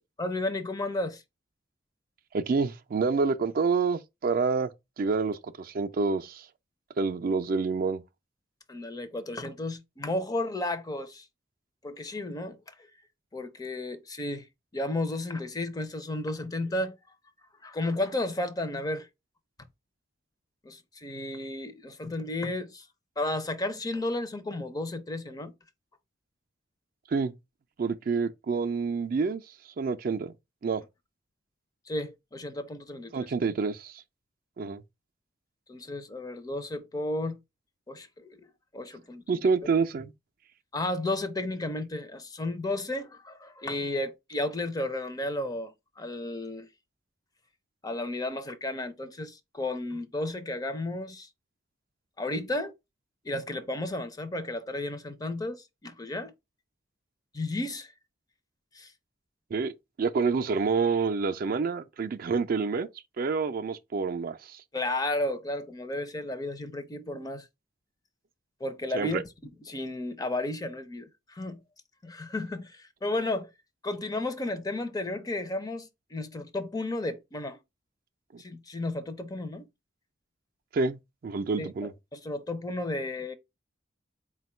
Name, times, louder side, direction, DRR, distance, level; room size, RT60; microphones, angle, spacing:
voice 1, 0.2-1.2 8.7-11.3 11.8-12.6 13.3-14.5 14.7-17.0 17.6-19.1 20.6-22.9 23.2-25.5 31.9-33.3 35.7-37.4 37.9-38.5 38.7-39.4 40.7-46.7 47.8-51.3 52.2-52.7 53.2-56.3 57.3-57.9 58.7-58.9 64.7-67.5 68.6-69.2 69.7-71.6 72.0-73.5 73.8-77.6 78.4-79.7 81.6-83.3, left 2 dB, 20° left, 0.5 m, -33 dB
voice 2, 2.3-4.7 5.0-6.5 7.0-8.0 27.1-27.3 27.8-29.4 29.8-30.3 30.6-30.8 33.1-34.0 34.6-34.8 39.3-40.1 59.5-59.7 60.0-62.9 63.2-64.6 68.9-69.2 78.3-78.4 80.7-81.9, right 4 dB, 50° right, 0.4 m, -28 dB
4.3 x 2.2 x 4.2 m
head